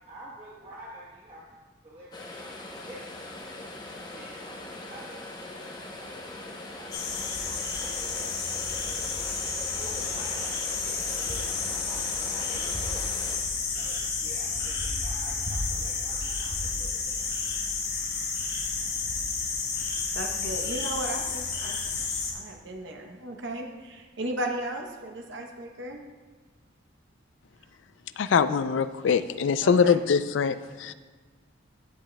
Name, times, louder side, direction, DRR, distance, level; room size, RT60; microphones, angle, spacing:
voice 1, 0.1-1.6 1.8-5.5 6.0-13.1 13.3-13.5 13.7-17.6, right 1 dB, 30° right, -7 dB, 1.0 m, -48 dB
sound 1, 2.1-13.4, left 2 dB, 20° left, 0.7 m, -41 dB
sound 2, 6.9-22.3, left 4 dB, 55° left, 1.4 m, -31 dB
voice 2, 20.1-21.8 22.1-26.0 29.6-30.0, right 1 dB, 75° right, 2 dB, 0.8 m, -35 dB
voice 3, 28.2-30.9, left 6 dB, 75° left, 13 dB, 0.3 m, -23 dB
16.0 x 6.1 x 2.2 m, 1.4 s
head